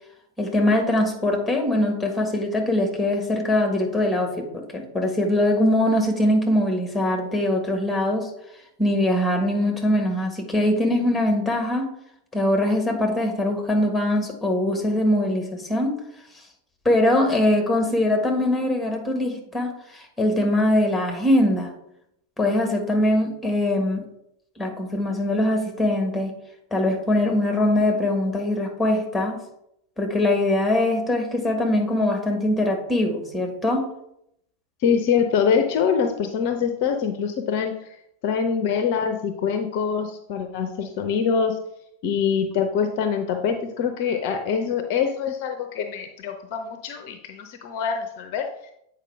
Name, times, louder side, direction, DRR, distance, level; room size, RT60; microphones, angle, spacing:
voice 1, 0.4-8.3 8.8-11.9 12.3-15.9 16.8-21.7 22.4-24.0 24.6-26.3 26.7-29.4 30.0-33.9, left 1 dB, 5° left, 3 dB, 1.6 m, -22 dB
voice 2, 34.8-37.9 38.2-41.6 42.0-48.5, left 6 dB, 45° left, 6 dB, 0.6 m, -24 dB
8.2 x 4.8 x 3.5 m, 0.77 s
figure-of-eight pair, 90°, 0 cm